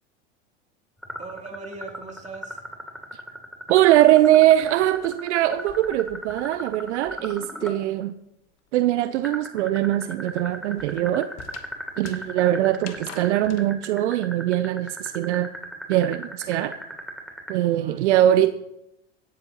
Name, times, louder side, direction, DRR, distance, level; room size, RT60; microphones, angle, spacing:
sound 1, 1.0-7.8 9.2-17.5, equal, ahead, 2.8 m, -36 dB
voice 1, 1.2-2.6 17.7-18.5, right 3 dB, 20° right, 2 dB, 2.8 m, -40 dB
voice 2, 3.7-8.1 8.7-11.3 12.0-15.5 15.9-16.8 17.5-18.5, right 13 dB, 70° right, 12 dB, 0.8 m, -21 dB
sound 2, 3.8-7.5 7.8-13.7, left 8 dB, 45° left, 1.7 m, -48 dB
17.5 x 13.5 x 3.0 m, 0.83 s
hypercardioid pair, 85°, 36 cm